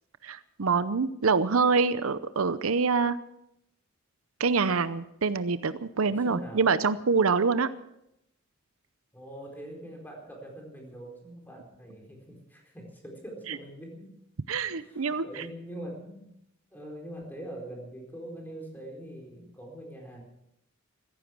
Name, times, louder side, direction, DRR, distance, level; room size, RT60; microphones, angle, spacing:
voice 1, 0.2-3.2 4.4-7.7 14.5-15.3, right 4 dB, 80° right, 14 dB, 0.7 m, -25 dB
voice 2, 6.2-6.9 9.1-14.1 14.7-16.3 16.7-20.2, right 1 dB, 10° left, 0 dB, 4.3 m, -43 dB
15.0 x 15.0 x 6.2 m, 0.80 s
head